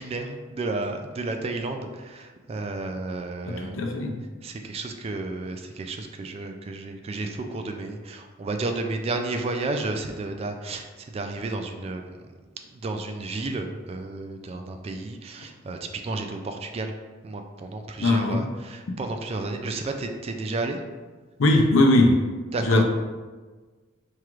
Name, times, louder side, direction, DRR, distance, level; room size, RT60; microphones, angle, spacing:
voice 1, 0.0-3.8 4.4-12.1 12.7-16.9 17.2-20.8 22.5-22.8, right 2 dB, 30° right, 5 dB, 0.3 m, -32 dB
voice 2, 3.5-4.2 18.0-18.5 21.4-22.1 22.6-22.8, left 2 dB, 85° left, 3 dB, 0.5 m, -20 dB
4.6 x 2.4 x 3.0 m, 1.4 s
head